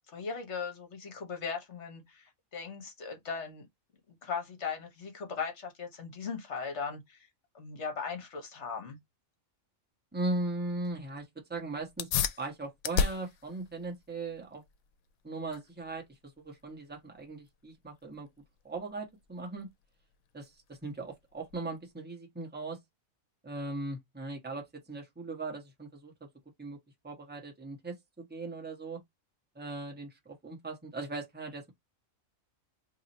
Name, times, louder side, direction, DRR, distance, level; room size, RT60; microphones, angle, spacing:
voice 1, 0.1-3.7 4.2-7.3 7.5-9.0, left 5 dB, 55° left, 1.4 m, -38 dB
voice 2, 10.1-12.1 12.4-14.6 15.2-18.3 18.6-19.7 20.3-22.8 23.4-26.3 26.6-26.8 27.0-29.0 29.5-31.7, right 2 dB, 10° right, 1.1 m, -38 dB
sound 1, 11.9-21.9, left 7 dB, 90° left, 1.0 m, -38 dB
2.9 x 2.8 x 4.0 m
omnidirectional pair, 1.4 m